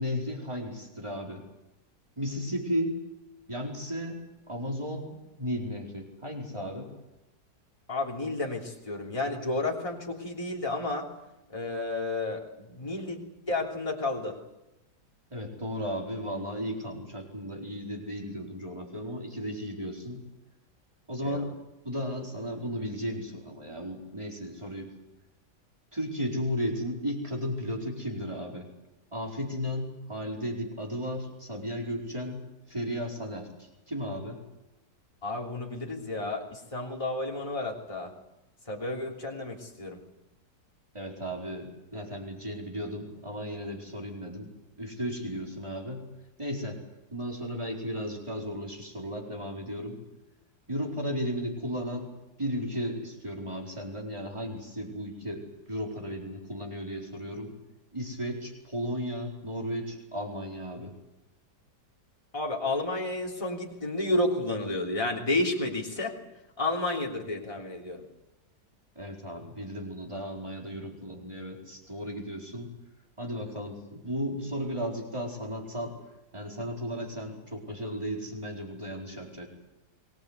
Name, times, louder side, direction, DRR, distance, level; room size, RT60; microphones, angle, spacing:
voice 1, 0.0-1.4 2.2-3.0 3.5-6.9 15.3-20.2 21.1-21.6 21.8-24.9 25.9-28.7 29.1-32.4 32.7-34.4 40.9-44.5 44.8-46.0 46.4-46.8 47.1-50.0 50.7-52.1 52.4-57.5 57.9-60.9 68.9-72.7 73.2-76.0 76.3-79.5, equal, 15° right, 0 dB, 4.5 m, -35 dB
voice 2, 7.9-11.1 11.5-13.2 13.5-14.4 21.2-21.5 35.2-38.1 38.7-40.0 62.3-66.2 66.6-68.0, left 2 dB, 20° left, -1 dB, 3.3 m, -31 dB
23.5 x 20.5 x 8.2 m, 0.96 s
omnidirectional pair, 1.8 m